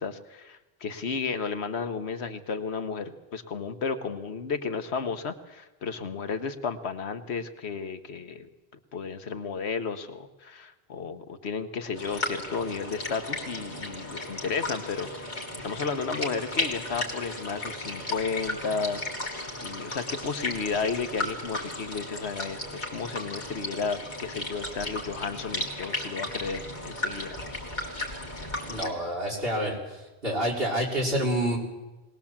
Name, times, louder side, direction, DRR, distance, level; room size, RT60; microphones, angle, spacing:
voice 1, 0.0-8.5 8.9-15.3 15.6-27.3, left 5 dB, 75° left, 9 dB, 1.4 m, -33 dB
sound 1, 11.9-28.9, left 2 dB, 45° left, 2.8 m, -35 dB
voice 2, 28.6-30.0 30.2-31.6, right 1 dB, 60° right, -2 dB, 4.5 m, -28 dB
20.5 x 19.0 x 7.3 m, 1.1 s
omnidirectional pair, 1.1 m